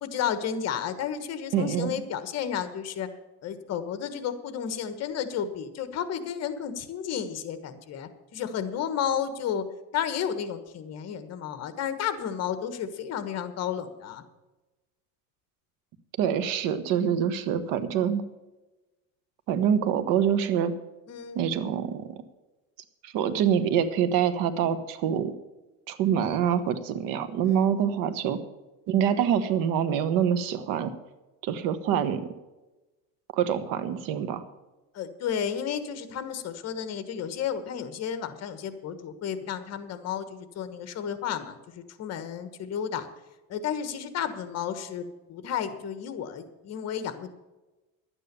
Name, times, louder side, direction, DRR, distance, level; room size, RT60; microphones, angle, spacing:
voice 1, 0.0-3.1 3.4-9.6 9.9-14.2 21.1-21.4 27.4-27.6 34.9-43.1 43.5-47.3, left 8 dB, 50° left, 11 dB, 1.4 m, -32 dB
voice 2, 1.5-1.9 16.2-18.2 19.5-20.7 21.3-22.1 23.0-25.3 25.9-28.4 28.9-30.9 31.4-32.3 33.3-34.4, right 8 dB, 75° right, 11 dB, 1.3 m, -25 dB
11.5 x 9.1 x 6.9 m, 1.1 s
cardioid pair, 140°, 33 cm